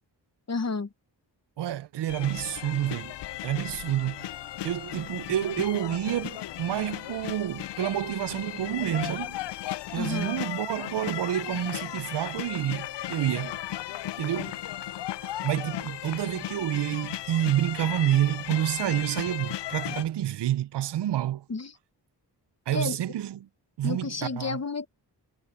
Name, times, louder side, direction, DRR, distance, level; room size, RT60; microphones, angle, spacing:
voice 1, 0.5-0.9 10.0-10.3 21.5-21.7 22.7-23.0 23.8-24.9, left 4 dB, 40° left, 1.4 m, -31 dB
voice 2, 1.6-3.1 3.4-4.3 4.6-9.4 9.9-13.6 14.2-14.6 15.2-21.4 22.7-23.5 23.8-24.6, right 12 dB, 75° right, 0.6 m, -29 dB
sound 1, 2.1-20.0, left 13 dB, 75° left, 0.6 m, -36 dB
cardioid pair, 75°, 42 cm